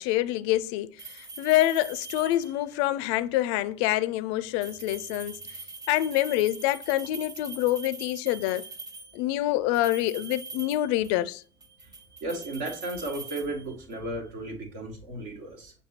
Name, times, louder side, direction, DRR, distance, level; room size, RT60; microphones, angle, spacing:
voice 1, 0.0-5.4 5.9-8.6 9.1-11.4, left 14 dB, 60° left, 0.4 m, -26 dB
sound 1, 1.0-2.7 4.5-9.2 9.7-11.3 11.6-14.1, right 3 dB, 25° right, 0.6 m, -43 dB
voice 2, 12.2-15.7, right 2 dB, 70° right, 1.4 m, -34 dB
7.1 x 2.7 x 2.8 m
hypercardioid pair, 70°, 16 cm